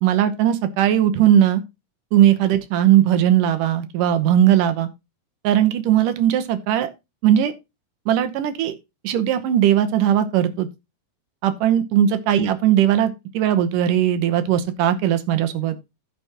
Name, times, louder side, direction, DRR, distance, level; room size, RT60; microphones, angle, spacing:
voice 1, 0.0-1.6 2.1-4.9 5.4-6.9 7.2-7.5 8.1-8.8 9.0-10.7 11.4-15.8, right 11 dB, 75° right, 2.4 m, -18 dB
15.0 x 6.1 x 2.9 m
omnidirectional pair, 4.0 m